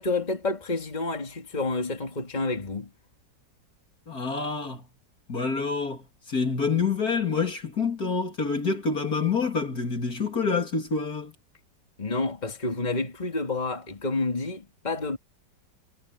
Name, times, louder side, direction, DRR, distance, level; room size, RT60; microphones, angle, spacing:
voice 1, 0.0-2.9 12.0-15.2, left 3 dB, 20° left, 2.9 m, -29 dB
voice 2, 4.1-4.8 5.3-11.3, left 5 dB, 50° left, 3.4 m, -27 dB
omnidirectional pair, 2.0 m